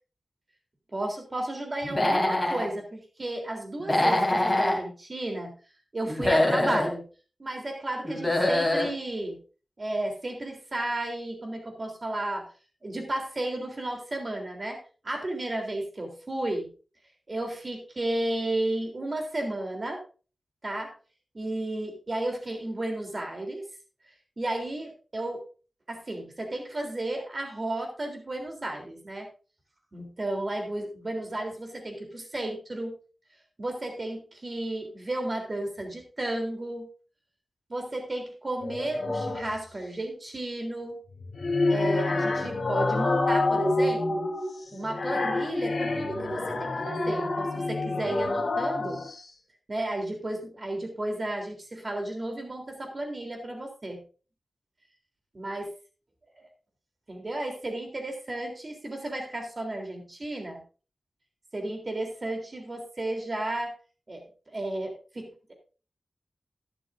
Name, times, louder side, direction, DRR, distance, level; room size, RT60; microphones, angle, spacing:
voice 1, 0.9-5.5 5.9-7.0 7.4-9.4 9.8-12.5 12.8-14.8 15.0-16.7 17.3-20.0 20.6-20.9 21.3-23.6 24.4-25.4 25.9-29.3 29.9-32.9 33.6-36.9 37.7-41.0 41.7-44.3 44.7-49.0 49.7-54.0 55.4-55.7 57.1-60.6 61.5-63.7 64.1-65.5, right 1 dB, 40° right, 3 dB, 3.5 m, -33 dB
Human voice / Animal, 1.8-2.7 3.8-4.8 6.1-6.9 8.0-8.9, left 1 dB, 15° left, 3.0 m, -24 dB
sound 1, 38.6-39.6 41.1-49.2, left 2 dB, 65° left, 3.1 m, -28 dB
12.0 x 11.5 x 2.6 m, 0.35 s
wide cardioid pair, 90°, 0 cm